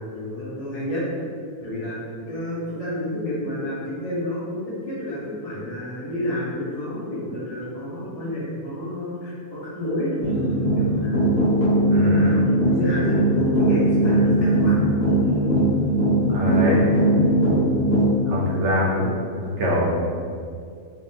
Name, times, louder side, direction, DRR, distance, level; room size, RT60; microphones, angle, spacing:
voice 1, 0.1-1.0 1.6-2.0 2.3-11.3 12.0-14.8 16.6-16.8, left 1 dB, 35° left, -9 dB, 0.6 m, -29 dB
sound 1, 10.2-18.2, right 1 dB, 60° left, 1.6 m, -20 dB
voice 2, 11.9-12.4 16.3-16.8 18.3-19.1 19.6-20.0, left 1 dB, 55° right, -4 dB, 0.9 m, -23 dB
3.6 x 3.3 x 2.7 m, 2.3 s
omnidirectional pair, 1.7 m